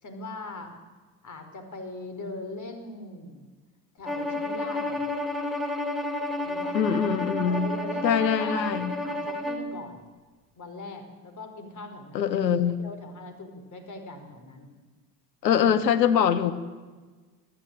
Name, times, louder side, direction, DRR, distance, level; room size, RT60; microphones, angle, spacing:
voice 1, 0.0-0.8 1.2-3.5 3.9-5.1 6.2-6.8 7.4-10.0 10.6-14.7, left 2 dB, 35° left, 7 dB, 5.1 m, -41 dB
Bowed string instrument, 4.1-9.7, left 1 dB, ahead, 3.5 m, -31 dB
voice 2, 6.7-7.7 8.0-8.9 12.1-12.7 15.4-16.5, left 8 dB, 85° left, 11 dB, 1.7 m, -23 dB
24.5 x 15.0 x 9.3 m, 1.3 s
hypercardioid pair, 70°, 50 cm